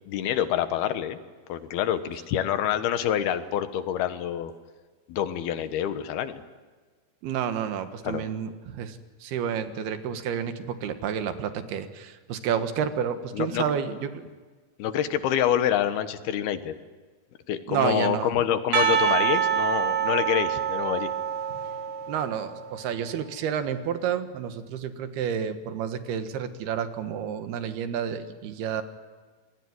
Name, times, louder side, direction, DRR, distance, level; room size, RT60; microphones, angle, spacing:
voice 1, 0.1-1.2 1.5-4.5 5.1-6.4 8.0-8.3 12.8-12.9 13.3-13.7 14.8-16.7 17.5-21.1, left 10 dB, 85° left, 10 dB, 3.3 m, -27 dB
voice 2, 7.2-14.3 17.7-18.3 22.1-28.8, right 8 dB, 90° right, 9 dB, 3.5 m, -30 dB
Percussion, 18.7-22.6, right 8 dB, 70° right, 3.8 m, -26 dB
27.0 x 20.5 x 9.7 m, 1.4 s
omnidirectional pair, 4.4 m